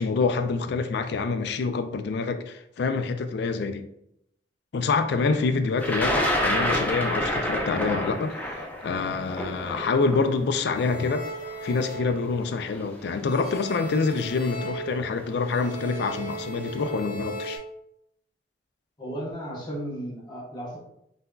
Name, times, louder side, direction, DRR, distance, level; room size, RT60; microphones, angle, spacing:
voice 1, 0.0-3.9 4.7-11.3 11.6-17.6, left 4 dB, 65° left, 9 dB, 0.4 m, -26 dB
Thunder, 5.8-11.8 12.7-12.8 14.0-14.2 14.5-15.0, left 1 dB, 10° left, 0.6 m, -28 dB
sound 1, 10.7-12.9 13.2-17.6, right 2 dB, 50° left, 1.2 m, -37 dB
voice 2, 19.0-20.8, right 1 dB, 25° left, -3 dB, 1.0 m, -35 dB
5.6 x 2.7 x 2.3 m, 0.78 s
head